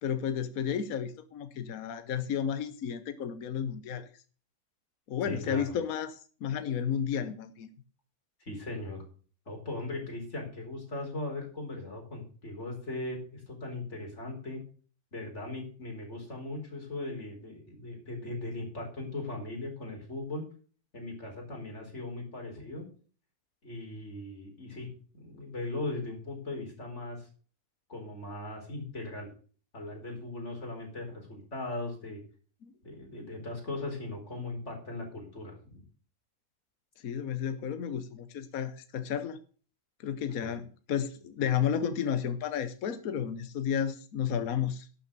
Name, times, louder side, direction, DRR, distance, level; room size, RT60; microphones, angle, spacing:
voice 1, 0.0-4.1 5.1-7.7 32.6-32.7 37.0-39.4 40.0-44.9, left 8 dB, 65° left, 11 dB, 1.4 m, -32 dB
voice 2, 5.3-5.7 8.4-9.0 9.5-14.6 15.1-20.4 20.9-22.8 23.6-24.9 25.1-27.3 27.9-29.3 29.7-32.2 32.8-35.8 40.4-40.5, left 2 dB, 45° left, 1 dB, 4.7 m, -38 dB
12.0 x 7.2 x 6.7 m, 0.40 s
omnidirectional pair, 1.6 m